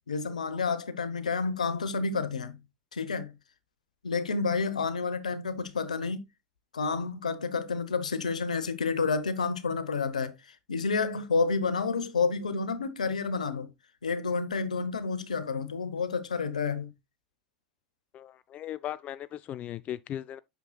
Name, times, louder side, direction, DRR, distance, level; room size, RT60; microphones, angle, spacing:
voice 1, 0.1-2.6 2.9-3.3 4.0-6.2 6.7-13.7 14.0-16.9, left 4 dB, 85° left, 0.9 m, -30 dB
voice 2, 18.1-20.4, left 11 dB, 35° left, 0.3 m, -38 dB
8.1 x 6.5 x 2.3 m
hypercardioid pair, 85°, 4 cm